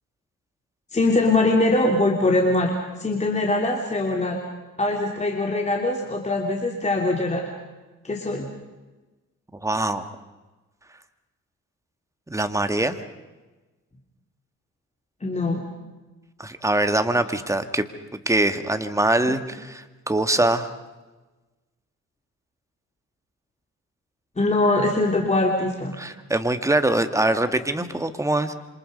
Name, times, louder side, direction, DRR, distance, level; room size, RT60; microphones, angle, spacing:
voice 1, 0.9-4.4 4.8-7.5 8.0-8.5 15.2-15.6 19.0-19.1 24.4-25.9, left 2 dB, 20° left, 1 dB, 3.2 m, -22 dB
voice 2, 9.6-10.0 12.3-12.9 16.4-17.9 18.3-20.7 26.0-28.5, right 2 dB, 10° right, 9 dB, 1.9 m, -23 dB
27.5 x 26.0 x 5.4 m, 1.2 s
cardioid pair, 90°, 30 cm